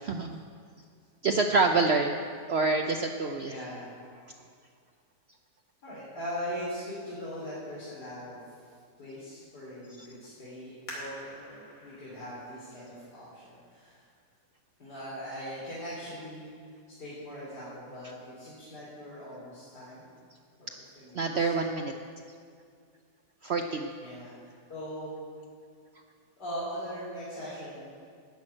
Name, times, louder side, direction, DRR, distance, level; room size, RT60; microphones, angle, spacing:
voice 1, 0.1-0.4 1.2-2.1 2.5-3.5 21.1-21.9 23.4-23.9, right 3 dB, 70° right, 4 dB, 0.6 m, -26 dB
voice 2, 3.4-3.9 5.8-14.0 14.8-16.7 17.0-20.1 20.6-21.5 24.0-25.2 26.4-27.9, equal, 75° left, -9 dB, 3.6 m, -41 dB
sound 1, 10.9-14.2 14.8-14.9 15.6-15.9 16.3-16.4, left 1 dB, 55° left, 3.2 m, -47 dB
12.5 x 6.1 x 8.9 m, 2.1 s
omnidirectional pair, 1.8 m